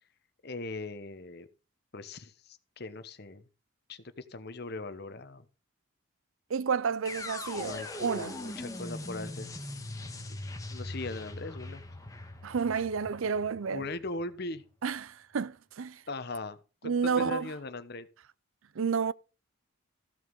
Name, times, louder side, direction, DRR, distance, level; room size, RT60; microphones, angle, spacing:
voice 1, 0.4-1.5 1.9-3.4 3.9-5.5 7.6-9.5 10.3-10.4 10.7-11.8 13.7-14.6 16.1-18.1, left 2 dB, 50° left, 1.0 m, -40 dB
voice 2, 6.5-8.3 12.4-13.9 14.8-16.0 16.8-17.5 18.8-19.1, right 6 dB, 80° right, 0.5 m, -30 dB
sound 1, 7.1-15.0, left 2 dB, 15° left, 1.5 m, -41 dB
14.5 x 6.5 x 5.4 m
head